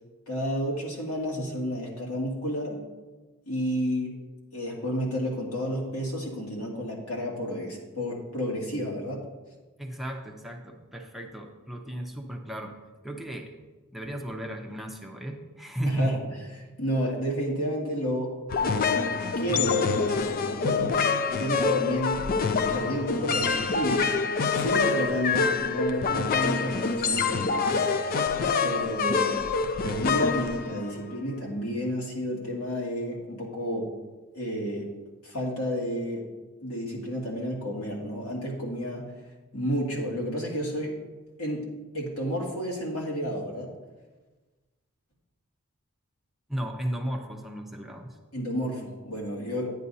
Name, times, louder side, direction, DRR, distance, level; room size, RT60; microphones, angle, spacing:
voice 1, 0.3-2.8 3.5-4.2 4.5-9.2 15.9-16.2 16.8-18.9 19.4-20.9 21.3-22.2 22.7-27.8 28.6-29.5 29.8-33.9 34.3-34.9 35.2-36.2 36.6-39.1 39.5-41.0 41.4-41.7 41.9-43.7 48.3-49.7, equal, 85° left, -3 dB, 2.3 m, -31 dB
voice 2, 9.8-12.7 13.0-13.5 13.9-16.2 46.5-48.2, equal, ahead, 1 dB, 0.7 m, -34 dB
sound 1, 18.5-31.2, left 5 dB, 45° left, 0.4 m, -26 dB
10.5 x 9.5 x 2.7 m, 1.2 s
head